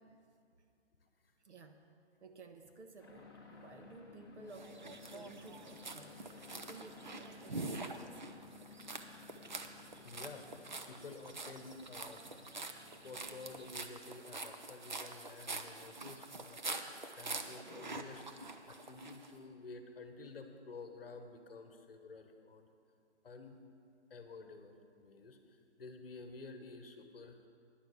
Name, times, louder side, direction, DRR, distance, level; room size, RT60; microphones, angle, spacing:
voice 1, 1.4-1.8 2.2-6.1 6.5-8.2, right 4 dB, 75° right, 5 dB, 1.2 m, -54 dB
sound 1, 3.0-13.8, left 4 dB, 20° left, 0.9 m, -57 dB
sound 2, 4.5-19.3, right 3 dB, 45° right, 0.5 m, -46 dB
voice 2, 10.0-12.2 12.9-16.6 17.0-18.2 18.7-22.7 23.2-23.6 24.1-24.7 25.0-27.4, left 3 dB, 55° left, 6 dB, 1.1 m, -51 dB
10.5 x 5.8 x 8.1 m, 2.3 s
hypercardioid pair, 180°, 34 cm